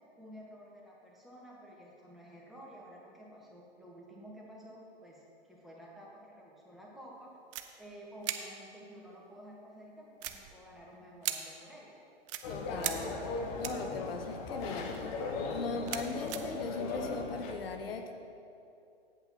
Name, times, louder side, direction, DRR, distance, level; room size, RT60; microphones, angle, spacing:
voice 1, 0.2-7.3 7.8-12.0, equal, ahead, -5 dB, 1.4 m, -51 dB
sound 1, 7.5-7.6 8.2-8.4 10.2-10.8 11.2-11.4 12.3-12.4 12.8-12.9 13.6-13.9 14.8-15.1 15.5-16.4, right 12 dB, 30° right, 0.5 m, -37 dB
sound 2, 12.4-17.5, left 3 dB, 35° left, 1.0 m, -38 dB
voice 2, 12.5-15.1 15.5-18.1, left 4 dB, 65° left, 6 dB, 0.8 m, -39 dB
8.1 x 8.0 x 4.3 m, 2.7 s
figure-of-eight pair, 115°, 32 cm